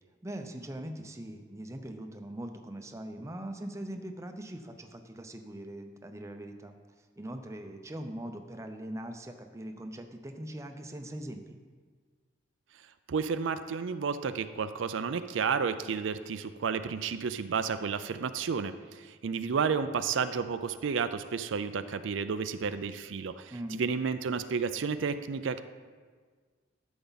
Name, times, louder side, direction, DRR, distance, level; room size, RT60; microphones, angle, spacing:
voice 1, 0.2-6.8 7.2-11.6 23.5-23.8, right 1 dB, 15° right, 5 dB, 0.6 m, -41 dB
voice 2, 13.1-25.6, right 5 dB, 85° right, 11 dB, 0.4 m, -31 dB
12.0 x 7.0 x 4.0 m, 1.6 s
head